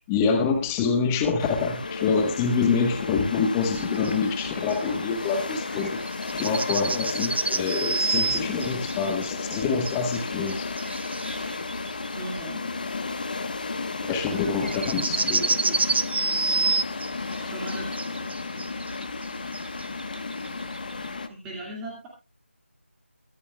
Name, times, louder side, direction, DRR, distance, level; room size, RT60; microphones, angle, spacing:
voice 1, 0.1-6.0 6.3-10.7 14.1-15.5, left 5 dB, 10° left, 6 dB, 1.2 m, -26 dB
sound 1, 1.4-21.3, left 3 dB, 40° left, 1.3 m, -33 dB
sound 2, 3.6-21.1, right 3 dB, 55° right, 1.0 m, -30 dB
voice 2, 12.1-12.7 15.2-15.8 17.3-17.9 18.6-18.7 21.3-22.1, right 1 dB, 5° right, -2 dB, 2.1 m, -38 dB
22.5 x 8.4 x 2.3 m, 0.29 s
figure-of-eight pair, 165°, 7 cm